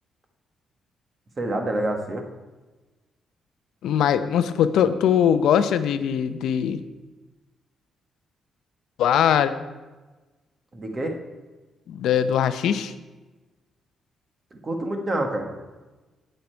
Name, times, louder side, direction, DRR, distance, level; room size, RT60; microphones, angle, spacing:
voice 1, 1.4-2.2 10.7-11.2 14.5-15.5, right 1 dB, 25° right, 4 dB, 1.4 m, -27 dB
voice 2, 3.8-6.8 9.0-9.5 11.9-12.9, left 9 dB, 80° left, 11 dB, 0.7 m, -21 dB
18.0 x 6.6 x 4.5 m, 1.2 s
cardioid pair, 175°, 0 cm